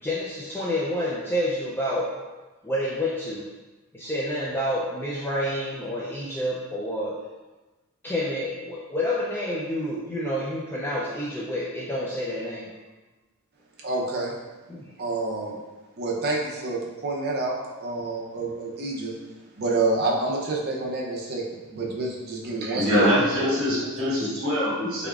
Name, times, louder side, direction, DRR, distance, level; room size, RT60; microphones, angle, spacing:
voice 1, 0.0-2.2 2.6-3.5 3.9-7.2 8.0-12.7 14.7-14.9, left 1 dB, 10° left, -6 dB, 0.3 m, -28 dB
voice 2, 13.8-14.3 15.0-15.6 16.0-17.6 17.8-19.1 19.6-23.0, right 2 dB, 45° right, -3 dB, 0.6 m, -28 dB
voice 3, 22.7-25.1, equal, 60° right, -6 dB, 1.2 m, -23 dB
3.5 x 3.4 x 2.4 m, 1.2 s
head